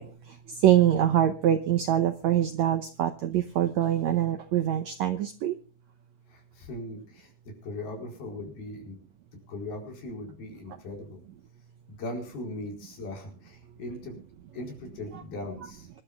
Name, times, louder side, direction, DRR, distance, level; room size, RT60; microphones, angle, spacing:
voice 1, 0.0-5.6 15.1-15.2, right 11 dB, 80° right, 7 dB, 1.6 m, -24 dB
voice 2, 6.3-9.0 9.5-11.2 11.9-14.2 14.5-15.9, left 2 dB, 85° left, 1 dB, 6.5 m, -39 dB
25.0 x 12.0 x 2.4 m, 0.38 s
omnidirectional pair, 4.2 m